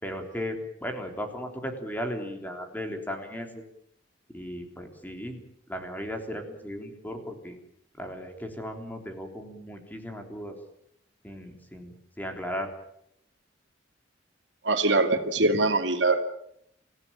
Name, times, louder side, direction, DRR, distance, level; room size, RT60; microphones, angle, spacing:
voice 1, 0.0-3.6 4.3-5.4 5.7-7.5 8.0-10.6 11.2-12.7, equal, 10° left, 4 dB, 3.6 m, -36 dB
voice 2, 14.6-16.3, right 2 dB, 75° right, 6 dB, 2.5 m, -23 dB
27.0 x 16.5 x 8.9 m, 0.74 s
head